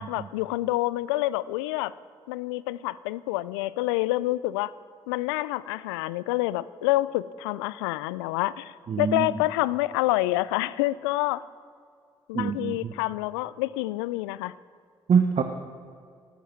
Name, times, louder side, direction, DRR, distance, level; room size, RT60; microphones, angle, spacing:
voice 1, 0.0-1.9 2.3-4.7 5.1-11.4 12.3-14.5, left 17 dB, 85° left, 19 dB, 0.4 m, -27 dB
voice 2, 8.9-9.3 12.3-12.9 15.1-15.4, right 6 dB, 55° right, 7 dB, 1.0 m, -24 dB
13.0 x 12.5 x 7.4 m, 2.3 s
hypercardioid pair, 40°, 13 cm